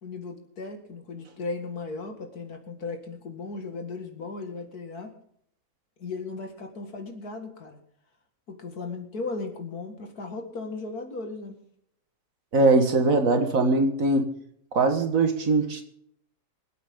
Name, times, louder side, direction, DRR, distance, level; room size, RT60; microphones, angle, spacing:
voice 1, 0.0-5.1 6.0-7.8 8.5-11.6, left 3 dB, 75° left, 5 dB, 2.5 m, -36 dB
voice 2, 12.5-14.3 14.7-15.8, right 3 dB, 60° right, 6 dB, 1.9 m, -21 dB
25.5 x 8.6 x 3.7 m, 0.69 s
omnidirectional pair, 1.6 m